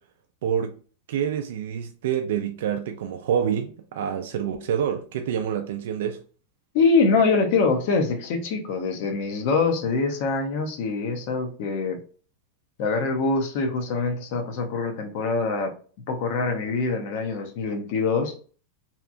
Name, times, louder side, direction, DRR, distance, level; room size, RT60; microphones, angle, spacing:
voice 1, 0.4-0.8 1.1-6.2, right 8 dB, 75° right, 0.3 m, -27 dB
voice 2, 6.7-12.0 12.8-15.7 16.1-18.3, left 4 dB, 50° left, 0.5 m, -24 dB
2.8 x 2.3 x 2.4 m
supercardioid pair, 165°, 0 cm